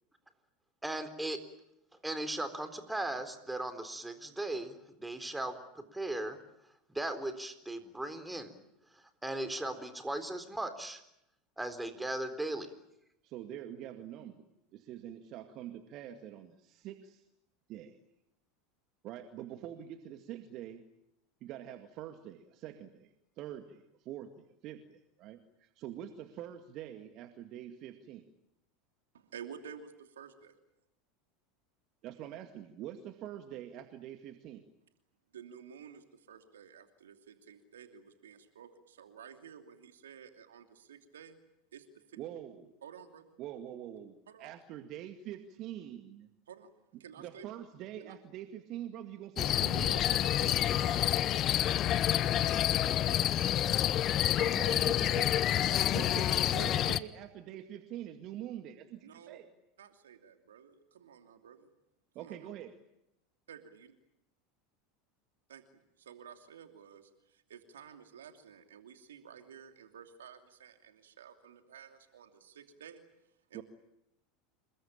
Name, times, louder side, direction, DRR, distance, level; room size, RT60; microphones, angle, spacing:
voice 1, 0.8-1.4 2.0-6.4 6.9-8.5 9.2-11.0 11.6-12.7, right 1 dB, 5° right, 9 dB, 4.1 m, -37 dB
voice 2, 13.2-17.2 17.7-18.0 19.0-20.8 21.4-23.1 23.4-28.3 32.0-34.6 42.2-42.8 43.4-46.3 47.2-50.1 54.4-55.5 55.9-59.5 62.1-62.7 73.5-73.6, right 11 dB, 50° right, 7 dB, 2.1 m, -45 dB
voice 3, 29.1-30.5 35.3-41.4 41.7-42.2 42.8-43.2 44.3-44.5 46.5-46.7 47.0-47.5 48.0-48.1 49.8-53.2 55.6-56.0 56.5-56.9 59.0-59.4 59.8-61.7 62.2-62.5 63.5-63.9 65.5-65.6 66.0-73.0 73.5-73.6, right 8 dB, 75° right, 6 dB, 2.8 m, -52 dB
sound 1, 49.4-57.0, left 11 dB, 40° left, 1.0 m, -28 dB
28.0 x 22.5 x 8.9 m, 0.82 s
hypercardioid pair, 80°, 0 cm